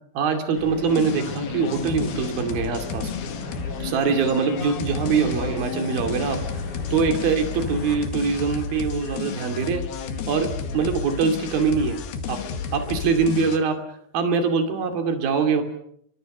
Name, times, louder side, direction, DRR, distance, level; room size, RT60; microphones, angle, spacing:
voice 1, 0.1-3.1 3.8-6.4 6.9-9.8 10.3-12.0 12.3-12.4 12.7-13.8 14.1-15.6, right 5 dB, 75° right, 6 dB, 4.4 m, -23 dB
sound 1, 0.5-8.0, left 3 dB, 30° left, 5.0 m, -36 dB
sound 2, 0.9-13.6, left 6 dB, 85° left, 3.8 m, -32 dB
28.0 x 24.0 x 6.6 m, 0.71 s
omnidirectional pair, 4.2 m